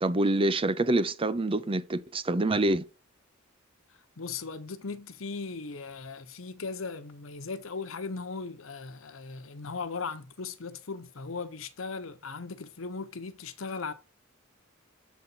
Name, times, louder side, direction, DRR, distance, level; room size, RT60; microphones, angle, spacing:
voice 1, 0.0-2.8, right 2 dB, 25° right, 0.6 m, -26 dB
voice 2, 3.9-13.9, left 4 dB, 75° left, 0.8 m, -38 dB
7.7 x 4.2 x 5.5 m
head